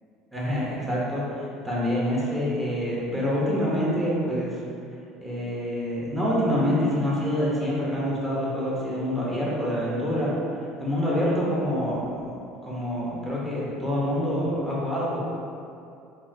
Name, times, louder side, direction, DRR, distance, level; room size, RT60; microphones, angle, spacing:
voice 1, 0.3-4.6 5.2-10.3 10.8-12.3 12.6-15.2, equal, 10° right, -7 dB, 0.9 m, -26 dB
3.4 x 2.1 x 2.7 m, 2.6 s
supercardioid pair, 105°, 0 cm